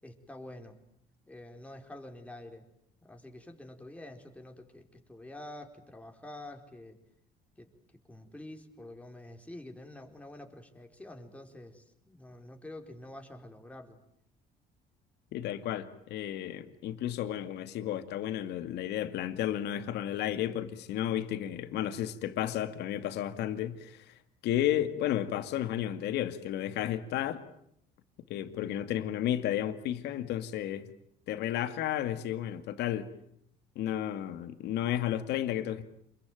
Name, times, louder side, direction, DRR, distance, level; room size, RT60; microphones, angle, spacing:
voice 1, 0.0-0.8 1.3-2.7 3.0-7.0 7.6-7.7 8.1-14.0, left 1 dB, 10° left, 4.4 m, -47 dB
voice 2, 15.3-24.1 24.4-27.4 28.3-30.9 31.3-33.1 33.8-35.8, left 11 dB, 80° left, 2.2 m, -32 dB
28.0 x 22.0 x 9.2 m
cardioid pair, 110°, 17 cm